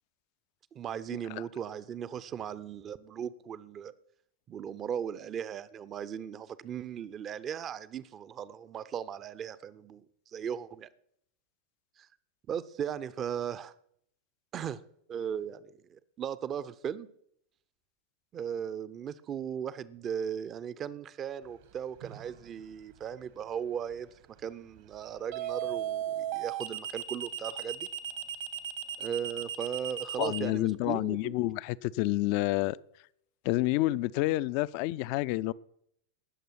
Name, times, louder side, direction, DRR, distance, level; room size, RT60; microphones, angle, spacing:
voice 1, 0.7-3.9 4.5-10.0 10.3-10.9 12.0-12.1 12.5-13.7 14.5-14.8 15.1-17.1 18.3-24.1 24.4-27.9 29.0-31.3, right 8 dB, 30° right, 0.6 m, -37 dB
sound 1, 22.0-22.4 25.3-30.4, right 10 dB, 55° right, 1.3 m, -35 dB
voice 2, 30.2-32.8 33.4-35.5, left 17 dB, 50° left, 0.4 m, -29 dB
19.0 x 6.7 x 6.0 m
figure-of-eight pair, 90°, 0 cm